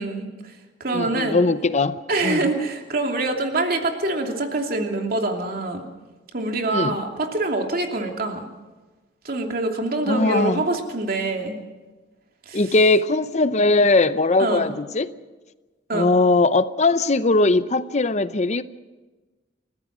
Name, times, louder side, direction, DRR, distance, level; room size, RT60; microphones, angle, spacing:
voice 1, 0.0-1.4 2.1-5.9 6.3-8.5 9.2-11.6 12.5-12.6 14.4-14.7 15.9-16.1, right 2 dB, 55° right, 2.8 m, -25 dB
voice 2, 0.9-2.5 6.7-7.0 10.1-10.6 12.5-15.1 15.9-18.6, left 3 dB, 40° left, 0.7 m, -20 dB
30.0 x 14.5 x 6.1 m
head